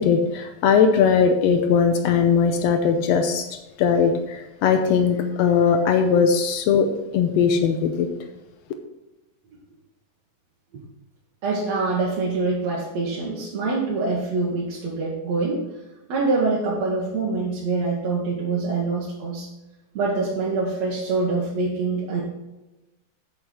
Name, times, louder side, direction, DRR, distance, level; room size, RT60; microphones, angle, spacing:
voice 1, 0.0-8.1, left 6 dB, 90° left, 6 dB, 1.4 m, -20 dB
voice 2, 11.4-15.6 16.1-19.5 19.9-22.2, right 3 dB, 60° right, -5 dB, 2.3 m, -25 dB
8.7 x 7.0 x 4.4 m, 1.0 s
omnidirectional pair, 3.8 m